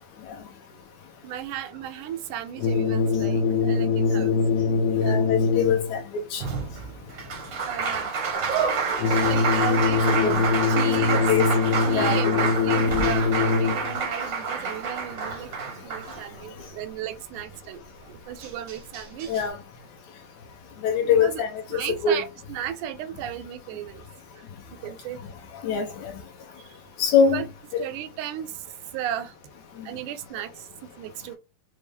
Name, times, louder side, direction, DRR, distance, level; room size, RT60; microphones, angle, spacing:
voice 1, 1.2-4.4 5.0-5.2 7.6-8.1 9.1-11.2 11.7-17.8 18.1-19.3 21.0-21.4 21.7-24.1 24.4-24.5 24.8-25.2 26.6-26.7 27.2-27.5 27.8-28.7 28.9-29.4 29.8-31.4, right 11 dB, 80° right, 2.0 m, -35 dB
sound 1, 2.6-6.0 9.0-14.0, left 5 dB, 90° left, 2.2 m, -23 dB
voice 2, 5.0-6.0 6.3-6.4 10.1-10.3 11.1-11.5 11.9-12.5 12.9-13.1 19.3-19.6 20.8-22.2 25.6-26.1 27.0-27.4 27.7-27.8, left 6 dB, 75° left, 2.0 m, -23 dB
Applause, 6.4-16.7 18.0-18.1 18.4-19.4, right 5 dB, 65° right, 1.1 m, -28 dB
5.3 x 2.0 x 3.4 m
omnidirectional pair, 3.6 m